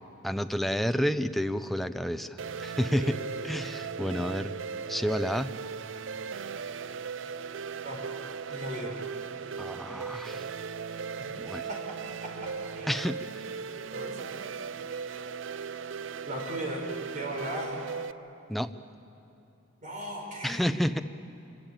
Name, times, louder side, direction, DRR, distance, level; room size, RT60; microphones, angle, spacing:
voice 1, 0.2-3.2 3.4-4.5 4.9-5.5 9.6-10.5 11.4-11.6 12.9-13.5 18.5-18.7 20.4-21.0, equal, ahead, 9 dB, 0.5 m, -30 dB
sound 1, 2.4-18.1, right 6 dB, 65° right, 0.5 m, -38 dB
voice 2, 8.5-9.0 11.2-11.4 11.7-12.0 12.2-12.9 13.6-14.3 16.2-16.8 17.1-17.8 19.8-20.7, equal, 40° right, 0 dB, 5.1 m, -38 dB
26.5 x 17.0 x 8.9 m, 2.8 s
head